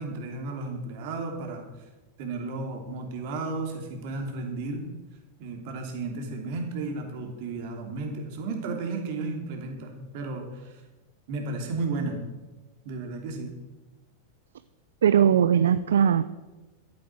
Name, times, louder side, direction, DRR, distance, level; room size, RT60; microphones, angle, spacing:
voice 1, 0.0-1.7 2.2-4.9 5.4-10.8 11.3-12.2 12.8-13.5, right 3 dB, 50° right, 2 dB, 3.0 m, -33 dB
voice 2, 15.0-16.4, right 8 dB, 65° right, 14 dB, 0.5 m, -20 dB
13.0 x 8.5 x 7.6 m, 1.1 s
figure-of-eight pair, 90°, 0 cm